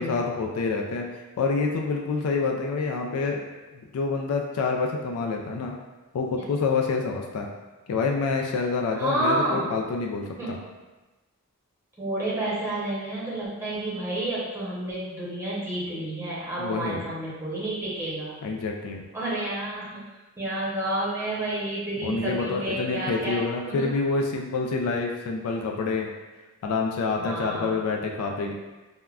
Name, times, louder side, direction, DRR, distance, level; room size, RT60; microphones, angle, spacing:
voice 1, 0.0-3.4 3.7-5.7 6.1-7.5 7.9-10.6 16.6-17.0 18.4-19.0 22.0-26.1 26.6-28.5, left 4 dB, 70° left, 2 dB, 0.3 m, -27 dB
voice 2, 8.9-9.8 10.4-10.6 12.0-18.4 19.1-20.0 20.4-23.9 27.1-27.7 28.4-28.5, right 1 dB, 10° right, -8 dB, 0.8 m, -30 dB
3.4 x 2.1 x 2.3 m, 1.2 s
head